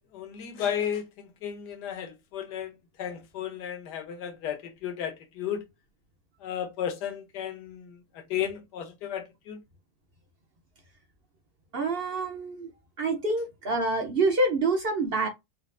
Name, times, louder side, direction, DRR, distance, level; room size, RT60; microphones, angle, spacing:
voice 1, 0.1-2.7 3.0-5.7 6.4-9.6, left 9 dB, 75° left, 1.4 m, -34 dB
voice 2, 11.7-12.7 13.0-15.3, right 2 dB, 55° right, 0.6 m, -26 dB
4.3 x 2.5 x 2.5 m
omnidirectional pair, 1.8 m